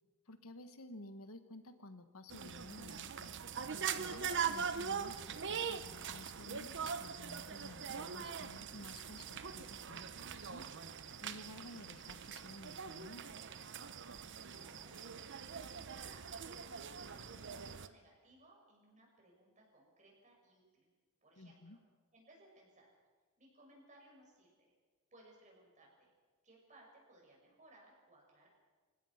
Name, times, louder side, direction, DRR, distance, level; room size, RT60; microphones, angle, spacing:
voice 1, 0.3-3.3 4.1-10.7 11.2-13.3 21.4-21.8, left 1 dB, 75° left, 9 dB, 1.6 m, -53 dB
sound 1, 2.3-17.9, right 7 dB, 55° right, 0.9 m, -42 dB
voice 2, 14.5-20.9 21.2-21.8 22.1-22.9 23.4-24.7 25.1-26.1 26.4-28.5, right 1 dB, 35° right, -1 dB, 7.2 m, -64 dB
29.0 x 16.5 x 5.9 m, 1.4 s
head